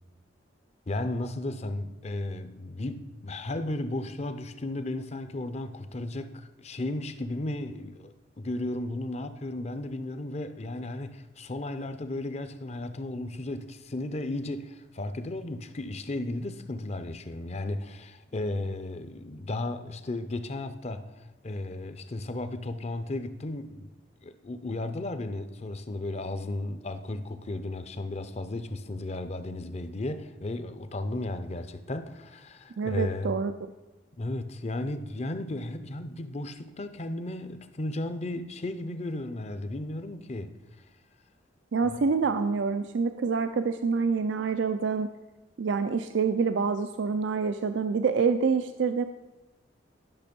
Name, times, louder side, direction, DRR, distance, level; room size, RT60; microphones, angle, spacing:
voice 1, 0.9-23.9 24.2-33.3 34.2-40.6 41.8-42.0, left 2 dB, 35° left, 0.6 m, -34 dB
voice 2, 32.8-33.5 41.7-45.1 45.6-49.0, right 5 dB, 85° right, 0.4 m, -26 dB
11.0 x 6.2 x 5.2 m
head